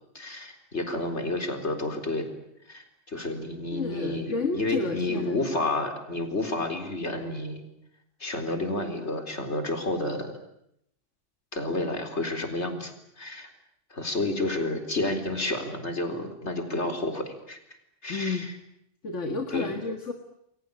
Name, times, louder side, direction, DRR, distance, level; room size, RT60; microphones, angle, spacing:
voice 1, 0.1-2.3 2.7-7.6 8.2-10.3 11.5-13.5 13.9-17.6 18.0-18.5 19.5-19.7, left 2 dB, 70° left, 5 dB, 4.3 m, -30 dB
voice 2, 3.7-5.6 18.1-18.5 19.0-20.1, left 4 dB, 85° left, 4 dB, 2.2 m, -31 dB
29.5 x 22.5 x 8.7 m, 0.78 s
omnidirectional pair, 1.2 m